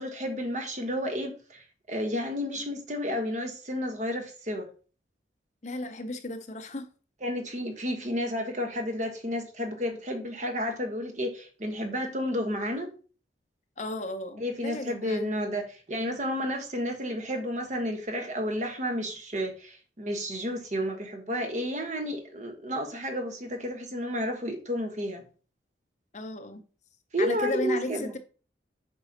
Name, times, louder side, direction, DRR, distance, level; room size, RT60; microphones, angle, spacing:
voice 1, 0.0-4.7 7.2-12.9 14.4-25.2 27.1-28.1, equal, 40° right, 1.3 m, -31 dB
voice 2, 5.6-6.9 13.8-15.3 26.1-26.6 27.2-28.2, left 2 dB, 40° left, 0.7 m, -34 dB
8.0 x 5.4 x 2.9 m
head